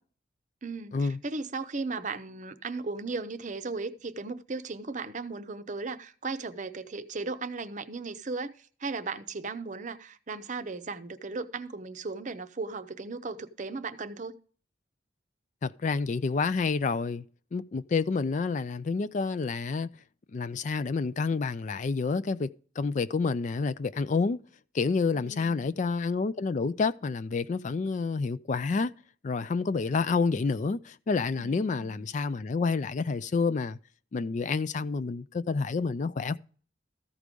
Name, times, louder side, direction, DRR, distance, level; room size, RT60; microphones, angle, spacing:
voice 1, 0.6-14.3 25.1-25.7 31.4-32.0, right 3 dB, 40° right, 0.7 m, -36 dB
voice 2, 15.6-17.2 17.5-19.9 20.3-22.5 22.8-24.4 24.7-28.9 29.2-33.8 34.1-36.4, left 4 dB, 40° left, 0.3 m, -29 dB
14.0 x 4.8 x 5.2 m
head